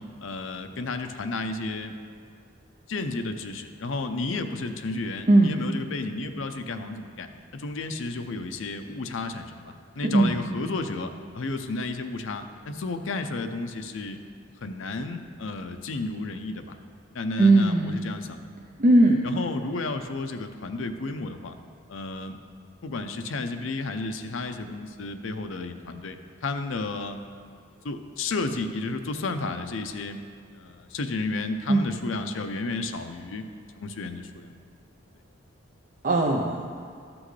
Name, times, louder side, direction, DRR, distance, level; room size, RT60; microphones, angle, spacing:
voice 1, 0.0-1.9 2.9-14.2 14.6-16.8 17.1-18.4 19.2-21.5 21.9-22.4 22.8-27.2 27.5-30.2 30.5-33.4 33.8-34.5, left 3 dB, 75° left, 7 dB, 0.6 m, -32 dB
voice 2, 5.3-5.6 10.0-10.4 17.4-17.9 18.8-19.2 31.7-31.9 36.0-36.7, right 2 dB, 40° right, 0 dB, 0.5 m, -19 dB
13.5 x 6.1 x 3.2 m, 2.3 s
head